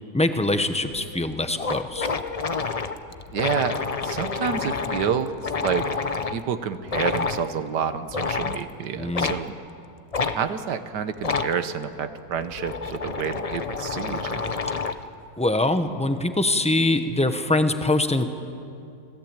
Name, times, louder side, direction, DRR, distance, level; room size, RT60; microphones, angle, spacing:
voice 1, 0.1-2.1 9.0-9.3 15.4-18.2, left 2 dB, 5° left, 8 dB, 0.6 m, -23 dB
sound 1, 0.9-1.0 1.3-1.4 1.6-6.4 6.9-7.4 8.1-8.6 9.1-9.4 10.1-10.4 11.2-11.5 12.3-15.1, left 4 dB, 70° left, 0.3 m, -28 dB
voice 2, 3.3-5.9 6.3-9.5 10.2-14.5, right 7 dB, 70° right, 10 dB, 1.6 m, -29 dB
26.5 x 17.0 x 8.8 m, 2.7 s
omnidirectional pair, 1.9 m